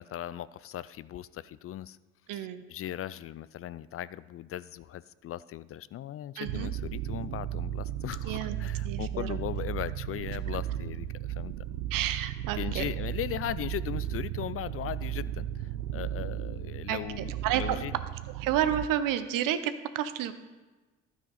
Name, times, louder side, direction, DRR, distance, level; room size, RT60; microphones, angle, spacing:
voice 1, 0.0-2.0 2.3-11.5 12.5-18.0, left 12 dB, 40° left, 17 dB, 0.4 m, -38 dB
voice 2, 2.3-2.6 6.4-6.7 8.2-8.6 8.8-9.4 11.9-12.9 16.9-17.8 18.4-20.3, right 11 dB, 65° right, 12 dB, 0.8 m, -30 dB
sound 1, 6.5-18.9, right 12 dB, 80° right, 0.5 m, -35 dB
12.5 x 9.3 x 4.1 m, 1.2 s
hypercardioid pair, 55°, 36 cm